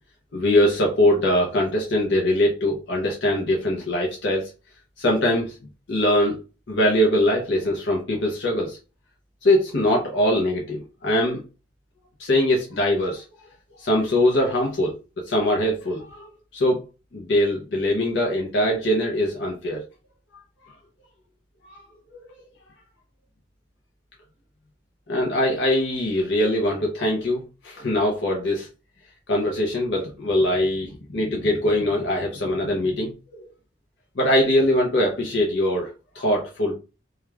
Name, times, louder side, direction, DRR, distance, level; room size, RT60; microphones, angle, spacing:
voice 1, 0.3-4.5 5.0-5.5 5.9-6.4 6.7-8.8 9.4-11.4 12.2-13.2 13.8-14.9 15.3-16.3 16.5-16.8 17.1-19.8 21.6-21.8 25.1-28.7 29.3-33.4 34.2-36.7, left 1 dB, 65° left, -2 dB, 0.7 m, -22 dB
2.3 x 2.3 x 3.2 m, 0.32 s
head